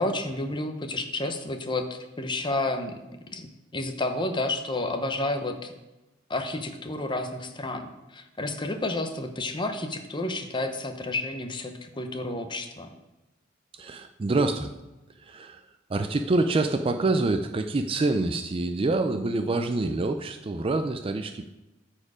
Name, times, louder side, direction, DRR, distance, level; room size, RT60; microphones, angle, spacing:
voice 1, 0.0-2.9 3.3-5.7 6.3-12.9, left 2 dB, 25° left, 6 dB, 0.7 m, -30 dB
voice 2, 13.7-14.7 15.2-15.6 15.9-21.5, right 2 dB, 25° right, 7 dB, 0.3 m, -26 dB
13.0 x 4.4 x 4.9 m, 1.0 s
head